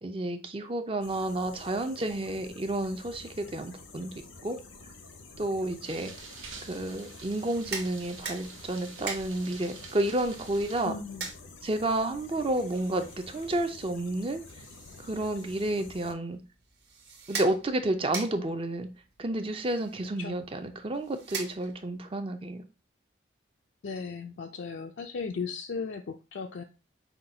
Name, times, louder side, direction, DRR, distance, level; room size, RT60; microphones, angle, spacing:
voice 1, 0.0-4.6 5.4-6.1 6.6-11.0 11.6-14.4 15.0-16.4 17.3-18.9 19.2-22.7, right 1 dB, 30° right, 7 dB, 0.5 m, -31 dB
sound 1, 1.0-16.1, left 3 dB, 90° left, 0.8 m, -49 dB
sound 2, 5.8-10.8, right 5 dB, 90° right, 1.0 m, -47 dB
sound 3, 7.3-22.0, right 5 dB, 55° right, 1.3 m, -44 dB
voice 2, 10.8-11.3 20.2-20.4 23.8-26.6, left 5 dB, 65° left, 3 dB, 0.4 m, -36 dB
5.8 x 2.3 x 3.8 m, 0.32 s
head